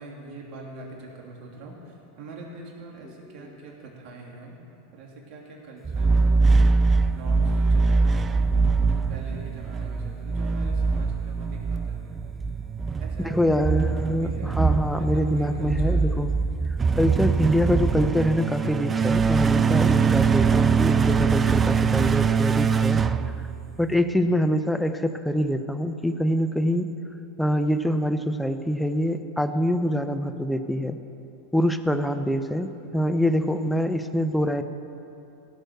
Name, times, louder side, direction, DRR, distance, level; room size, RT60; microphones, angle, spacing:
voice 1, 0.0-4.6 4.9-6.8 7.1-8.5 8.9-12.1 13.0-14.6 15.0-16.0, right 3 dB, 50° right, -2 dB, 2.8 m, -43 dB
voice 2, 3.0-3.7 13.2-16.3 16.9-23.0 23.8-26.9 27.4-31.0 31.5-34.6, equal, 5° left, 8 dB, 0.7 m, -25 dB
sound 1, 5.9-24.0, right 5 dB, 25° right, 0.4 m, -23 dB
16.0 x 6.4 x 6.7 m, 2.8 s
hypercardioid pair, 95°, 0 cm